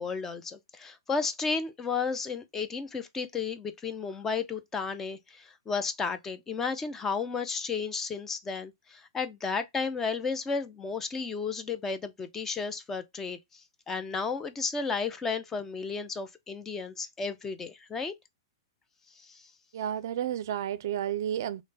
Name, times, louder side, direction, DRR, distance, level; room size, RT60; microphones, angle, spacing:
voice 1, 0.0-18.1 19.2-19.4, left 5 dB, 15° left, 0.5 m, -33 dB
voice 2, 19.7-21.6, right 10 dB, 60° right, 0.4 m, -31 dB
3.2 x 2.0 x 3.9 m
hypercardioid pair, 135°, 2 cm